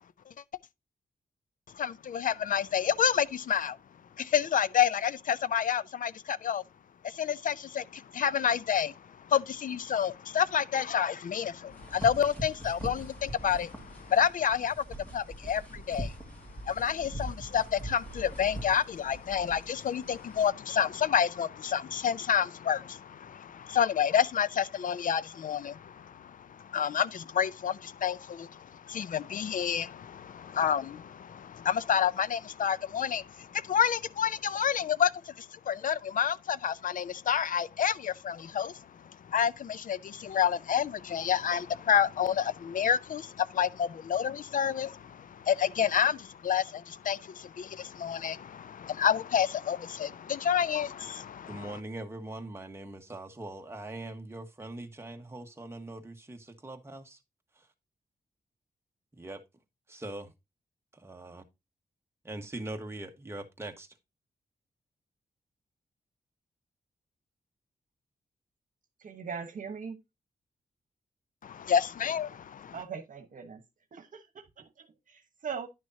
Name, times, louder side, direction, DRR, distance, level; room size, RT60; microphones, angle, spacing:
voice 1, 1.8-3.8 4.2-6.6 7.0-8.9 9.3-14.8 15.1-16.1 16.7-26.0 26.7-28.6 28.9-35.1 35.4-38.7 39.3-51.8 71.4-72.8, left 8 dB, 65° left, 0.5 m, -29 dB
sound 1, 11.7-20.5, right 1 dB, 10° left, 2.1 m, -42 dB
voice 2, 51.5-57.2 59.1-59.4 59.9-60.3 61.0-61.4 62.2-63.9, right 2 dB, 15° right, 1.3 m, -41 dB
voice 3, 69.0-70.0 72.7-73.6 73.9-75.7, right 6 dB, 60° right, 1.2 m, -40 dB
10.5 x 6.3 x 2.7 m
wide cardioid pair, 115°, 15 cm